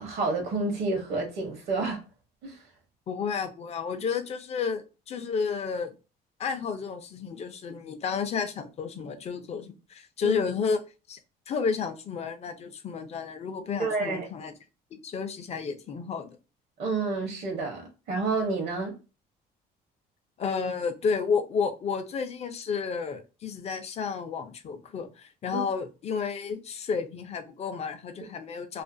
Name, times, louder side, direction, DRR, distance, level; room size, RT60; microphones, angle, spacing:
voice 1, 0.0-2.0 2.4-2.6 10.2-10.4 13.8-14.3 16.8-18.9 25.5-25.6, right 3 dB, 65° right, 0.8 m, -29 dB
voice 2, 3.1-5.9 6.4-10.8 11.1-11.2 11.5-14.5 14.9-16.4 20.4-28.8, left 5 dB, 40° left, 0.5 m, -31 dB
2.4 x 2.4 x 2.5 m
cardioid pair, 110°, 17 cm